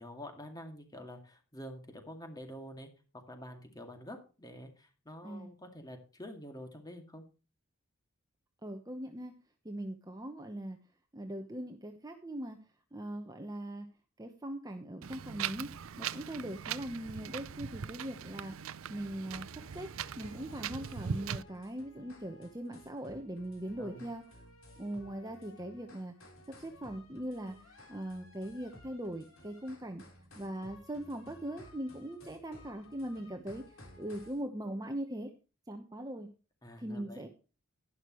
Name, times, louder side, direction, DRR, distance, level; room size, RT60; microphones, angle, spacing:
voice 1, 0.0-7.2 23.6-24.1 36.6-37.2, equal, 20° left, 5 dB, 2.2 m, -47 dB
voice 2, 8.6-9.3 9.6-10.8 11.1-12.6 12.9-13.9 14.2-15.7 16.0-24.2 24.8-26.2 26.5-30.0 30.4-35.3 35.7-36.3 36.8-37.3, right 1 dB, 15° right, 5 dB, 1.0 m, -41 dB
Wind, 15.0-21.4, right 7 dB, 70° right, 0.5 m, -40 dB
sound 1, 19.3-34.4, left 1 dB, 65° left, 3.9 m, -56 dB
11.5 x 11.0 x 3.1 m, 0.33 s
head